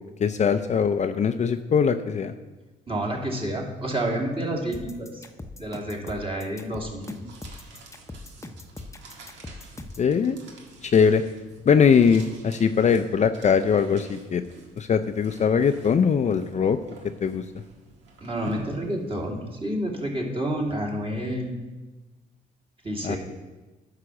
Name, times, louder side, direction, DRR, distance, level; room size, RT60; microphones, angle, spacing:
voice 1, 0.2-2.3 10.0-10.4 10.8-11.2 11.7-14.4 14.8-16.8 17.2-17.4 23.0-23.2, left 6 dB, 40° left, 9 dB, 0.5 m, -21 dB
voice 2, 2.9-5.2 5.6-7.3 18.2-21.6 22.8-23.2, right 1 dB, 30° right, -1 dB, 2.7 m, -29 dB
sound 1, 4.7-10.1, left 2 dB, 15° left, 0.9 m, -41 dB
sound 2, 7.0-19.6, right 2 dB, 80° right, 1.7 m, -47 dB
9.5 x 5.8 x 6.3 m, 1.2 s
supercardioid pair, 65°, 18 cm